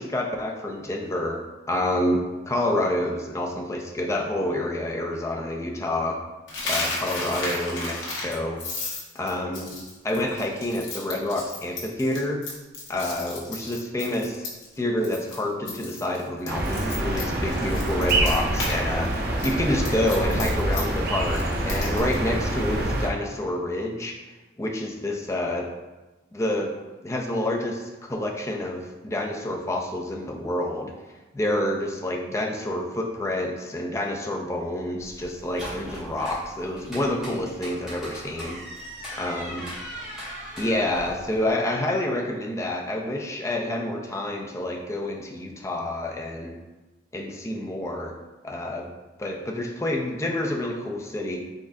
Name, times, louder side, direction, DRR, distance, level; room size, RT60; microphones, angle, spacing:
voice 1, 0.0-6.2 6.6-8.6 9.2-9.8 10.0-12.4 12.9-14.4 14.8-24.1 24.6-25.7 26.3-26.7 27.0-30.9 31.3-38.6 39.2-39.7 40.6-46.6 47.1-48.2 48.4-48.9 49.2-51.4, left 1 dB, 15° left, 1 dB, 0.3 m, -28 dB
Coin (dropping), 6.5-14.8 15.0-15.4 15.7-18.8 19.0-22.2, left 2 dB, 85° left, 1.0 m, -33 dB
sound 1, 16.5-23.1, right 1 dB, 50° right, 0.6 m, -26 dB
Door open, 35.0-41.5, equal, 5° right, 1.3 m, -39 dB
4.0 x 3.5 x 2.5 m, 1.1 s
head